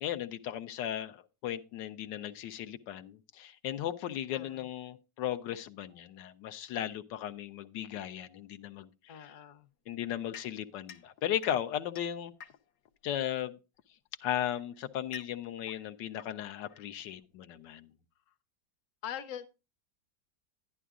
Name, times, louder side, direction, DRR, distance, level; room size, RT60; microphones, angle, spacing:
voice 1, 0.0-9.4 9.9-12.3 13.0-13.6 14.2-17.9, left 11 dB, 85° left, 10 dB, 1.3 m, -36 dB
voice 2, 9.1-9.7 19.0-19.5, left 10 dB, 55° left, 9 dB, 1.1 m, -42 dB
sound 1, 10.3-12.9 14.0-17.3, left 7 dB, 70° left, 1.2 m, -52 dB
11.0 x 11.0 x 2.4 m, 0.29 s
omnidirectional pair, 1.9 m